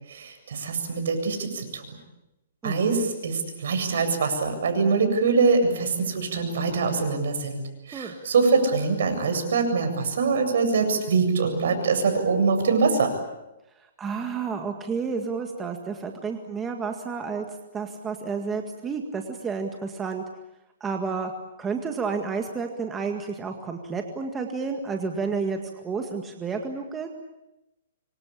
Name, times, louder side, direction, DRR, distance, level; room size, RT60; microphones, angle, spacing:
voice 1, 0.1-1.8 2.6-7.6 7.9-13.1, right 4 dB, 65° right, 6 dB, 7.7 m, -23 dB
voice 2, 2.6-2.9 7.9-8.1 14.0-17.5 17.7-20.2 20.8-21.3 21.6-27.1, right 5 dB, 10° right, 4 dB, 1.9 m, -30 dB
26.5 x 24.5 x 8.6 m, 0.93 s
hypercardioid pair, 165°, 0 cm